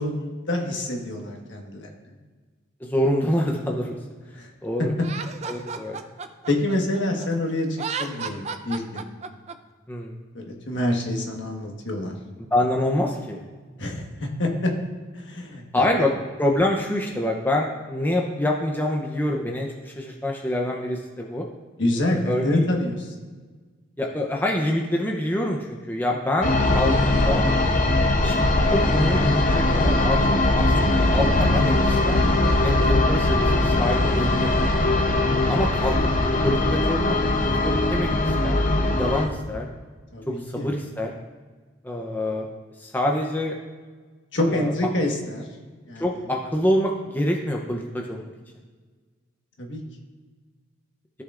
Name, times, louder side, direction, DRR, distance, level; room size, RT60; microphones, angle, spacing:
voice 1, 0.0-1.9 4.3-4.5 6.5-9.1 10.3-12.1 13.8-14.7 15.1-15.8 21.8-23.1 40.1-40.7 44.3-45.5 45.9-46.2 49.6-49.8, left 1 dB, 70° left, 1 dB, 1.4 m, -27 dB
voice 2, 2.8-4.0 4.6-4.9 5.5-6.0 9.9-10.1 12.5-13.4 15.7-16.1 16.4-21.4 22.3-22.7 24.0-26.9 27.2-27.4 28.2-30.2 30.6-32.2 32.6-34.6 35.5-37.2 37.6-38.1 38.4-39.7 40.5-41.1 41.8-42.5 42.8-43.5 44.5-44.7 46.0-48.3, left 1 dB, 10° left, 0 dB, 0.6 m, -26 dB
Laughter, 5.0-7.3 7.7-9.5, right 5 dB, 35° right, 0.4 m, -33 dB
sound 1, 26.4-39.3, left 2 dB, 40° left, 0.8 m, -20 dB
14.0 x 6.4 x 2.5 m, 1.4 s
head